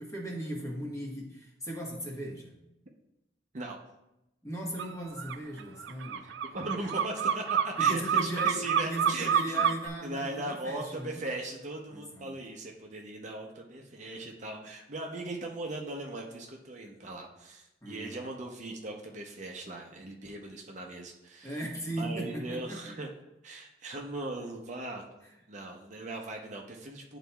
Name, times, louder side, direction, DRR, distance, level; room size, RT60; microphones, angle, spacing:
voice 1, 0.0-2.5 4.4-6.3 7.8-11.2 11.9-12.4 17.8-18.3 21.4-22.9, right 1 dB, 20° left, -2 dB, 1.2 m, -38 dB
sound 1, 4.8-4.9 5.2-9.9, right 7 dB, 80° right, 0.3 m, -27 dB
voice 2, 6.2-9.6 10.0-21.6 21.9-23.1 23.4-25.0 25.5-27.2, right 2 dB, 40° right, 1 dB, 0.7 m, -39 dB
11.0 x 4.0 x 2.3 m, 0.91 s
head